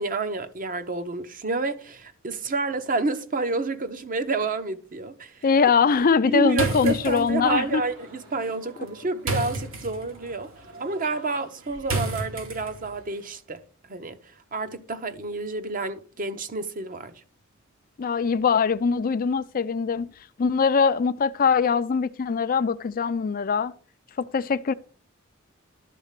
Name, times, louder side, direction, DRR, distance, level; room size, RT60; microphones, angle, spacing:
voice 1, 0.0-5.3 6.3-10.5 10.8-13.6 13.9-14.2 14.5-17.1, right 3 dB, 45° right, 0.9 m, -29 dB
voice 2, 5.4-7.8 18.0-20.1 20.4-23.7 24.2-24.7, left 5 dB, 45° left, 0.4 m, -22 dB
sound 1, 6.5-13.0, right 2 dB, 80° right, 2.7 m, -33 dB
12.0 x 4.0 x 7.4 m
head